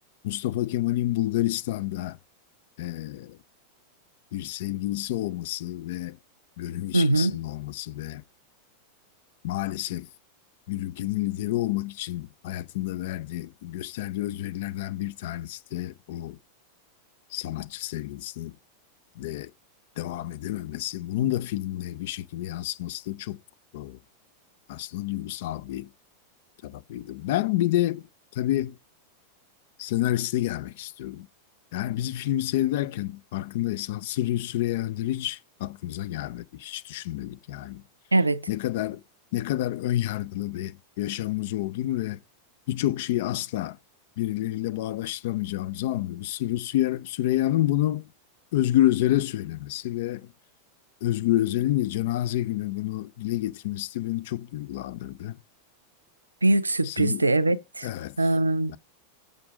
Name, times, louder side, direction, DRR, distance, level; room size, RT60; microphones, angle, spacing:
voice 1, 0.2-2.2 2.8-3.4 4.3-6.2 6.6-8.2 9.4-10.1 10.7-16.4 17.3-18.6 19.2-19.5 20.0-23.4 23.7-24.0 24.7-25.9 26.6-28.1 28.3-28.8 29.8-31.3 31.7-37.8 38.5-39.0 39.3-42.2 42.7-43.8 44.2-48.1 48.5-50.3 51.0-55.4 56.9-57.2 57.8-58.2 58.7-58.8, left 14 dB, 50° left, 0.5 m, -29 dB
voice 2, 6.9-7.4 38.1-38.5 56.4-57.9 58.2-58.7, right 2 dB, 80° right, 0.5 m, -22 dB
7.0 x 5.1 x 6.1 m
figure-of-eight pair, 90°, 0 cm